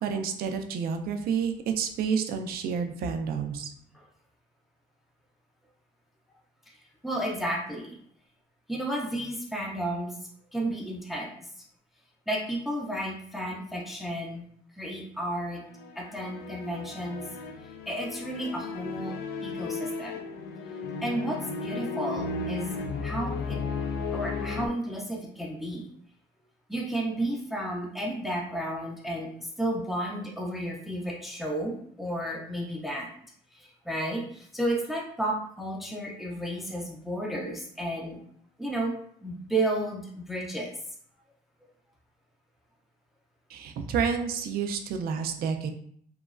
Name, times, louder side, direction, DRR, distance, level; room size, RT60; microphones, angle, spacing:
voice 1, 0.0-3.7 43.5-45.7, right 6 dB, 65° right, 6 dB, 0.4 m, -29 dB
voice 2, 7.0-8.0 8.7-10.2 10.5-11.5 12.3-14.4 14.7-15.6 16.0-17.2 17.9-20.2 21.0-23.6 24.1-25.9 26.7-33.1 33.5-38.2 38.6-39.0 39.2-40.8, right 1 dB, ahead, -1 dB, 0.4 m, -32 dB
sound 1, 15.6-24.7, left 4 dB, 70° left, 0.4 m, -35 dB
3.0 x 2.2 x 2.4 m, 0.64 s
cardioid pair, 110°, 17 cm